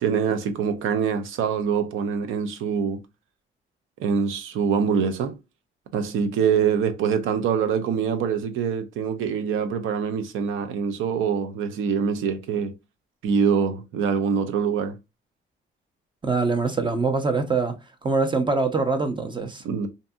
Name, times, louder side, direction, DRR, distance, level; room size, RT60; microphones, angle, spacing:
voice 1, 0.0-3.0 4.0-5.4 5.9-12.7 13.2-15.0 19.6-19.9, right 6 dB, 85° right, 0.6 m, -24 dB
voice 2, 16.2-17.8 18.0-19.6, right 4 dB, 25° right, 0.6 m, -23 dB
2.6 x 2.6 x 2.3 m
cardioid pair, 90°, 20 cm